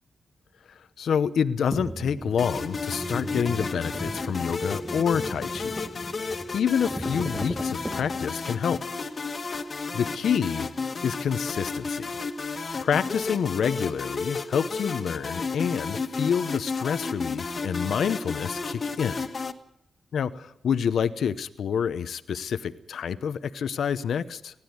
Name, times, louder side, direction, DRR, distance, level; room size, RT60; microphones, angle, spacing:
voice 1, 1.0-5.9 6.5-8.8 9.9-10.7 11.0-12.1 12.8-19.2 20.1-24.6, left 7 dB, 85° left, 13 dB, 0.8 m, -27 dB
sound 1, 1.7-8.4, right 1 dB, 15° right, 1.1 m, -37 dB
sound 2, 2.4-19.5, left 4 dB, 55° left, 1.5 m, -32 dB
19.5 x 15.0 x 9.6 m, 0.79 s
cardioid pair, 55°, 0 cm